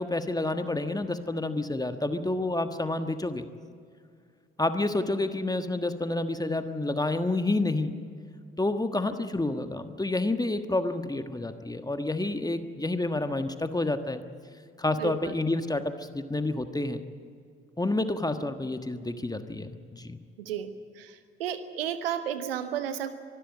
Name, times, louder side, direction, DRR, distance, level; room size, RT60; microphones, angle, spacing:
voice 1, 0.0-3.5 4.6-7.9 8.6-14.2 14.8-17.0 17.8-20.2, left 2 dB, 15° left, 9 dB, 1.4 m, -29 dB
voice 2, 15.0-15.3 20.4-20.7 21.0-23.1, right 9 dB, 80° right, 12 dB, 1.1 m, -33 dB
24.5 x 13.0 x 9.5 m, 2.2 s
figure-of-eight pair, 45°, 29 cm